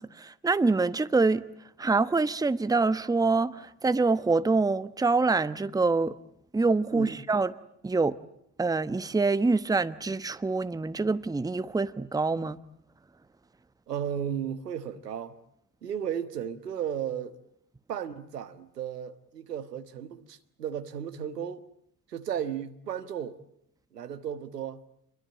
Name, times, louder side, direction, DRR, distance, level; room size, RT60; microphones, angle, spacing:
voice 1, 0.0-1.4 1.8-6.1 6.5-7.5 7.8-8.2 8.6-12.6, right 3 dB, 10° right, 1.0 m, -25 dB
voice 2, 13.9-15.4 15.8-17.4 17.9-21.6 22.1-23.4 23.9-24.8, right 9 dB, 80° right, 1.5 m, -34 dB
28.0 x 23.0 x 8.9 m
figure-of-eight pair, 60°, 47 cm